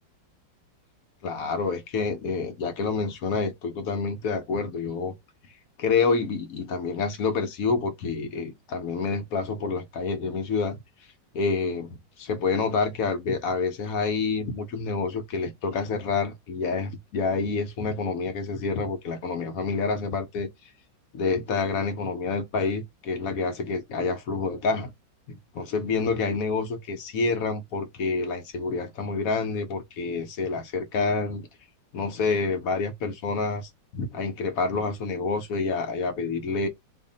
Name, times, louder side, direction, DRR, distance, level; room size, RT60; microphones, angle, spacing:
voice 1, 1.2-5.1 5.8-10.8 11.3-20.5 21.1-24.9 25.3-31.5 31.9-36.7, left 4 dB, 65° left, 1.0 m, -28 dB
2.8 x 2.5 x 3.8 m
omnidirectional pair, 1.9 m